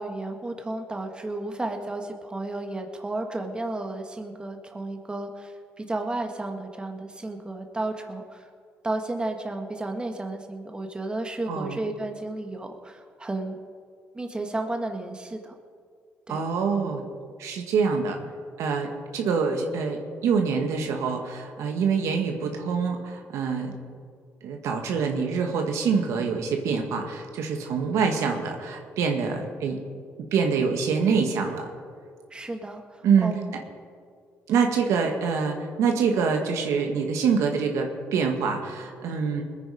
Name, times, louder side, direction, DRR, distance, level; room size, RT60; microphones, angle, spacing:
voice 1, 0.0-8.5 8.8-13.6 14.1-15.6 16.3-16.4 32.3-33.5, right 2 dB, 20° right, 4 dB, 1.7 m, -33 dB
voice 2, 11.5-11.8 16.3-17.0 17.4-18.2 18.6-23.7 24.4-29.8 30.2-31.7 33.0-33.6 34.5-39.4, right 5 dB, 80° right, 3 dB, 1.8 m, -25 dB
20.5 x 9.5 x 5.0 m, 2.1 s
cardioid pair, 75°, 5 cm